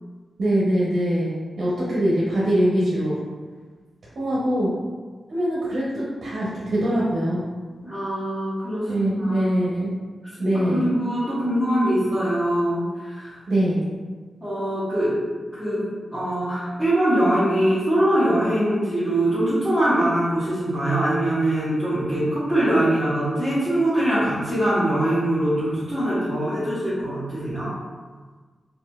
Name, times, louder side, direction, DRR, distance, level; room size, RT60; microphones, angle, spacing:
voice 1, 0.4-3.2 4.2-4.7 5.3-7.4 8.9-9.9 10.4-10.9 13.5-13.8, right 1 dB, 60° right, -7 dB, 0.8 m, -23 dB
voice 2, 7.8-9.5 10.5-13.3 14.4-15.1 15.5-27.7, right 1 dB, ahead, -16 dB, 1.4 m, -23 dB
4.8 x 2.6 x 2.4 m, 1.4 s
wide cardioid pair, 165°, 0 cm